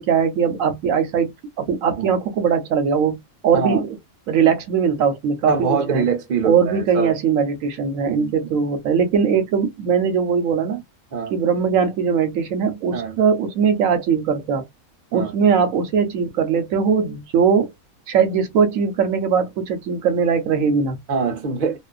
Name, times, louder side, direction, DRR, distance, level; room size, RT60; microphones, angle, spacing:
voice 1, 0.0-1.3 1.6-3.2 3.4-4.0 4.3-6.0 6.4-10.8 11.3-14.6 15.1-17.7 18.1-21.0, right 6 dB, 75° right, 1.0 m, -20 dB
voice 2, 5.5-7.2 8.0-8.3 11.1-11.3 12.9-13.2 15.1-15.3 21.1-21.8, right 5 dB, 45° right, 0.6 m, -24 dB
2.5 x 2.4 x 2.3 m
omnidirectional pair, 1.5 m